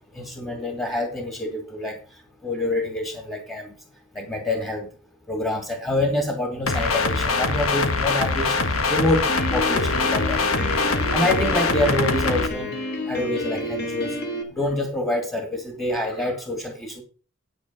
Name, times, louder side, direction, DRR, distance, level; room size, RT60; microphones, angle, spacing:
voice 1, 0.1-2.0 2.4-3.7 4.1-4.9 5.3-9.3 9.5-12.7 13.1-14.2 14.6-17.0, left 1 dB, 15° left, 3 dB, 2.3 m, -26 dB
sound 1, 6.7-12.5, left 3 dB, 80° left, 1.4 m, -23 dB
Piano, 9.3-14.4, left 1 dB, 50° left, 2.7 m, -30 dB
9.2 x 9.0 x 5.2 m, 0.36 s
head